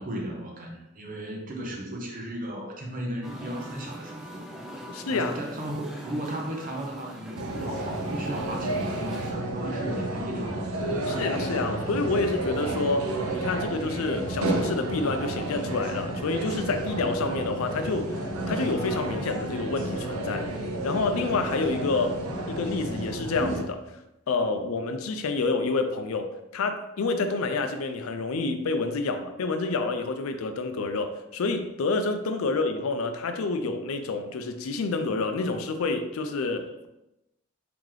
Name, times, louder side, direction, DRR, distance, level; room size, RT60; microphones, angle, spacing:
voice 1, 0.0-4.4 5.1-11.2, right 1 dB, 40° right, 0 dB, 0.7 m, -36 dB
Musical instrument, 3.2-9.3, right 1 dB, ahead, 0.4 m, -42 dB
voice 2, 4.9-5.3 11.1-20.4 20.8-22.2 22.5-23.8 24.3-36.9, left 3 dB, 75° left, 7 dB, 0.4 m, -28 dB
sound 1, 7.4-23.6, right 1 dB, 85° right, 0.6 m, -31 dB
3.1 x 2.9 x 3.7 m, 0.91 s
head